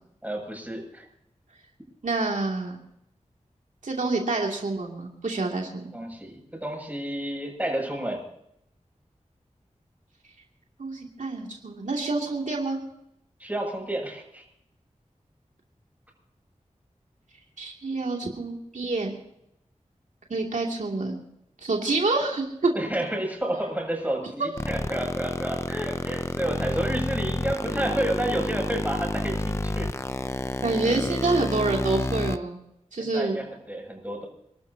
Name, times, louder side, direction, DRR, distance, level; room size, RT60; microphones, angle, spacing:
voice 1, 0.2-1.1 5.9-8.3 13.4-14.4 22.7-29.9 33.0-34.3, right 1 dB, 10° right, 1 dB, 7.2 m, -30 dB
voice 2, 2.0-2.8 3.8-5.8 10.8-12.8 17.6-19.2 20.3-21.2 21.6-22.7 30.6-32.6 32.9-33.4, right 3 dB, 85° right, 0 dB, 2.7 m, -27 dB
sound 1, 24.6-32.4, left 2 dB, 20° left, 0.6 m, -29 dB
29.0 x 13.0 x 2.9 m, 0.79 s
wide cardioid pair, 65°, 13 cm